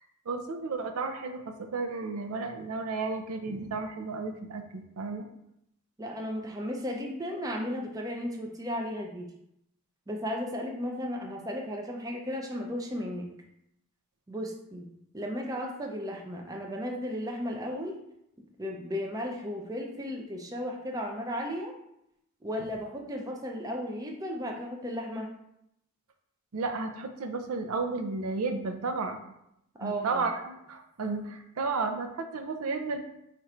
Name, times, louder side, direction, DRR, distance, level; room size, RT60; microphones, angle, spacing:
voice 1, 0.3-5.3 26.5-29.2 29.8-33.0, right 3 dB, 85° right, 6 dB, 0.5 m, -33 dB
voice 2, 6.0-9.3 10.1-13.3 14.3-14.9 15.1-17.9 18.6-21.7 22.4-25.3 29.8-30.2, equal, 15° right, 1 dB, 0.5 m, -35 dB
4.5 x 2.5 x 4.2 m, 0.79 s
head